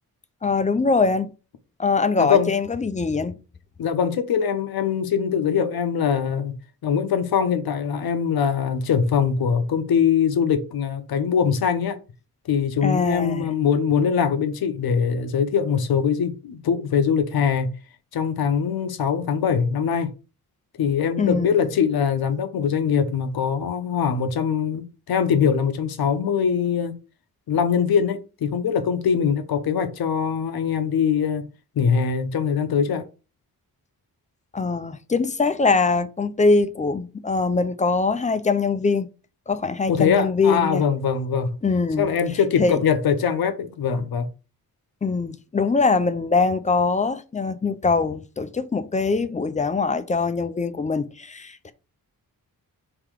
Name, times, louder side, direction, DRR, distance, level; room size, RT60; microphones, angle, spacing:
voice 1, 0.4-1.3 1.8-3.3 12.8-13.5 21.2-21.7 34.5-39.1 39.5-40.8 41.6-42.1 42.6-42.8 45.0-51.7, left 4 dB, 20° left, 0.4 m, -22 dB
voice 2, 2.2-2.5 3.8-6.5 6.8-12.0 12.5-17.7 18.1-20.1 20.8-26.9 27.5-31.5 31.8-33.0 39.9-41.6 42.0-44.3, left 7 dB, 75° left, 0.7 m, -22 dB
3.7 x 2.9 x 4.7 m
wide cardioid pair, 115°, 37 cm